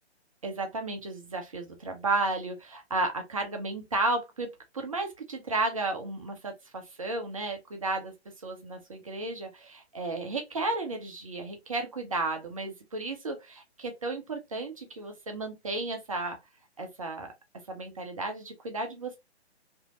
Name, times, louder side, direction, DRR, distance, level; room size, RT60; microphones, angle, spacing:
voice 1, 0.4-4.5 4.7-8.1 8.4-16.4 16.8-17.3 17.7-19.2, right 2 dB, 30° right, 0.4 m, -33 dB
2.7 x 2.6 x 2.3 m
figure-of-eight pair, 130°, 34 cm